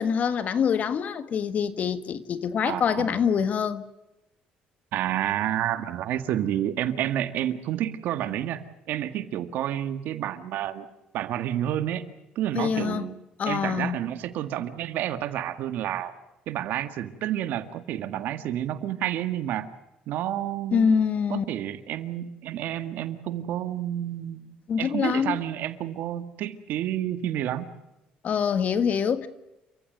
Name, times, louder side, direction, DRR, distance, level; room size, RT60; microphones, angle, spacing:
voice 1, 0.0-3.8 12.5-13.1 13.4-14.0 20.7-21.4 24.7-25.4 28.2-29.3, left 7 dB, 50° left, 1.7 m, -25 dB
voice 2, 2.6-3.2 4.9-10.9 11.1-12.1 12.4-13.2 13.5-16.1 16.5-19.7 20.1-20.9 21.3-24.5 24.8-27.7, right 11 dB, 75° right, 1.8 m, -30 dB
29.0 x 15.0 x 7.9 m
cardioid pair, 90°, 3 cm